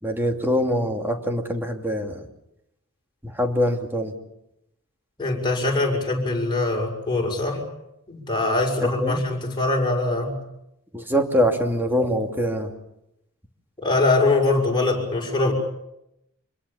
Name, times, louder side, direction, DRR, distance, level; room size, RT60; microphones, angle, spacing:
voice 1, 0.0-2.2 3.2-4.1 8.8-9.2 10.9-12.7, equal, 10° right, 3 dB, 2.6 m, -24 dB
voice 2, 5.2-7.6 8.1-10.4 13.8-15.5, left 2 dB, 20° left, 0 dB, 6.5 m, -22 dB
26.5 x 21.5 x 7.2 m, 0.86 s
head